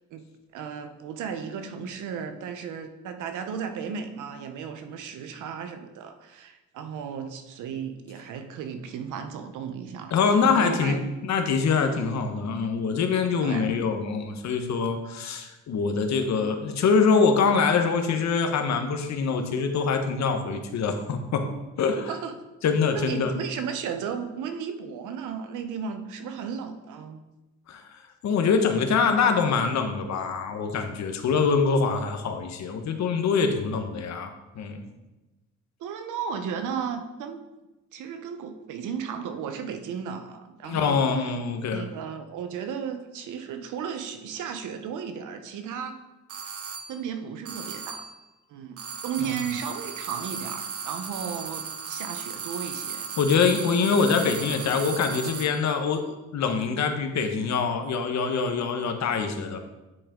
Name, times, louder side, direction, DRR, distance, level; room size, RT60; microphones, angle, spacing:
voice 1, 0.5-10.1 10.4-11.0 13.4-13.7 22.1-22.3 22.9-27.2 35.8-37.4 37.9-41.0 41.7-46.0 46.9-48.1 48.5-53.1 53.5-53.7, right 7 dB, 85° right, 7 dB, 0.9 m, -34 dB
voice 2, 10.1-21.5 21.8-22.1 22.6-23.3 27.7-27.8 28.2-34.9 40.6-41.8 49.2-49.3 53.2-56.0 56.3-59.6, left 5 dB, 65° left, 6 dB, 1.1 m, -24 dB
sound 1, 46.3-47.0 47.5-48.2 48.8-55.6, right 6 dB, 50° right, 0.9 m, -36 dB
9.7 x 5.0 x 3.7 m, 1.1 s
cardioid pair, 90°, 30 cm